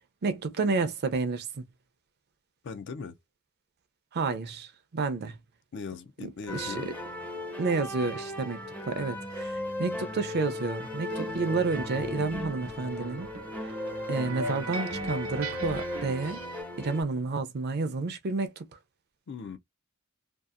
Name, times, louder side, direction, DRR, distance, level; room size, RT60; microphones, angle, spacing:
voice 1, 0.2-1.6 4.1-5.4 6.5-6.8 7.6-13.3 13.6-13.8 14.1-16.4 16.8-18.6, right 4 dB, 50° right, 0.5 m, -30 dB
voice 2, 2.6-3.2 5.7-6.9 19.3-19.6, left 5 dB, 55° left, 0.4 m, -39 dB
sound 1, 6.5-17.0, left 1 dB, 5° left, 0.5 m, -37 dB
sound 2, 11.1-16.6, right 2 dB, 85° right, 0.7 m, -39 dB
2.7 x 2.4 x 2.4 m
head